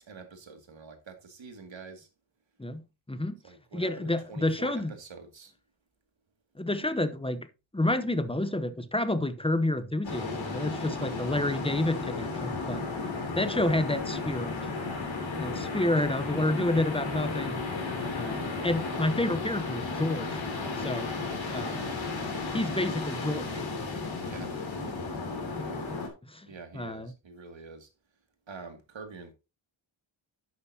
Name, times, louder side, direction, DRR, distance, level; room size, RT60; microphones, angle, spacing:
voice 1, 0.0-2.1 3.4-5.5 24.2-24.6 26.5-27.9 28.5-29.3, right 4 dB, 70° right, 2.1 m, -46 dB
voice 2, 3.7-4.9 6.6-7.5 7.7-12.8 13.3-14.6 15.3-17.6 18.1-20.4 20.8-21.1 21.5-21.9 22.5-23.6 25.6-25.7 26.3-26.5 26.7-27.1, left 1 dB, 10° left, 0.8 m, -29 dB
sound 1, 10.0-26.1, left 3 dB, 70° left, 3.0 m, -34 dB
11.0 x 8.1 x 2.7 m
wide cardioid pair, 130°, 48 cm